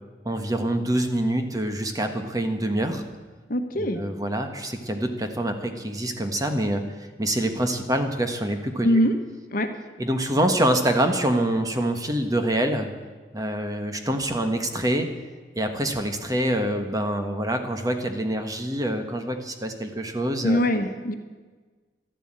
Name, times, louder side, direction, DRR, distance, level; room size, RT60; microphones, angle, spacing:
voice 1, 0.2-3.0 3.8-6.8 7.2-9.0 10.0-12.9 13.3-15.1 15.6-20.6, right 1 dB, 20° right, 6 dB, 1.4 m, -25 dB
voice 2, 3.5-4.0 8.8-9.1 9.5-9.7 20.4-21.1, equal, 50° left, 7 dB, 1.3 m, -22 dB
13.0 x 11.5 x 8.8 m, 1.4 s
head